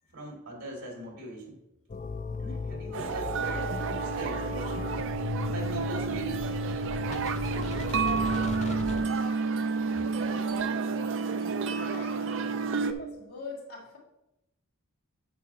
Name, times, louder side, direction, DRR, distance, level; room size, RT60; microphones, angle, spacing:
voice 1, 0.1-1.6 2.4-4.5 5.4-6.4, right 2 dB, 85° right, -2 dB, 2.9 m, -41 dB
sound 1, 1.9-9.0, left 4 dB, 30° left, 0.3 m, -35 dB
sound 2, 2.9-12.9, right 5 dB, 60° right, 0.4 m, -30 dB
voice 2, 10.2-10.6 11.7-12.3 12.8-14.0, left 3 dB, 80° left, -5 dB, 3.2 m, -44 dB
8.7 x 7.5 x 2.9 m, 0.90 s
head